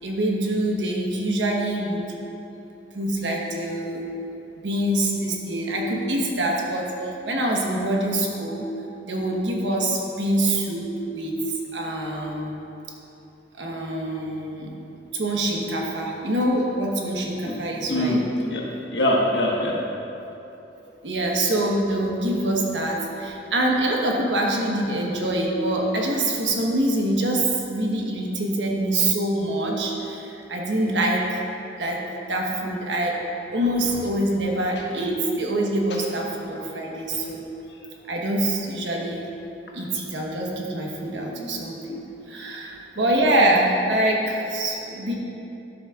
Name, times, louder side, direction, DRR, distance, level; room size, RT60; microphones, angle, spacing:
voice 1, 0.0-2.2 2.9-4.0 4.6-6.9 7.2-8.7 9.1-11.3 11.7-12.5 13.6-14.7 15.1-18.2 21.0-31.4 31.8-32.0 32.3-33.1 33.5-37.4 38.1-39.2 39.7-45.1, right 1 dB, 85° right, -1 dB, 1.2 m, -25 dB
voice 2, 17.9-18.2 18.5-19.8 41.4-41.7, left 1 dB, 70° left, -2 dB, 1.4 m, -24 dB
13.0 x 7.3 x 2.5 m, 2.9 s
head